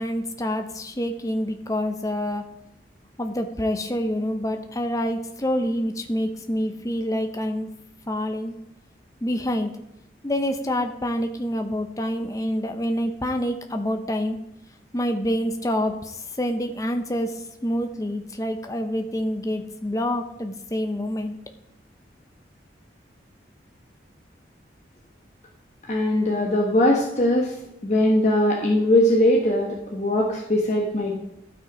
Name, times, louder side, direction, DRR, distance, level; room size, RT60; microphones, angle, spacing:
voice 1, 0.0-2.5 3.2-7.7 8.1-8.5 9.2-9.7 10.2-14.4 14.9-21.4, equal, 20° left, 5 dB, 0.8 m, -27 dB
voice 2, 25.9-27.6 27.8-31.2, left 1 dB, 40° left, -2 dB, 1.2 m, -20 dB
12.5 x 6.1 x 5.1 m, 0.82 s
head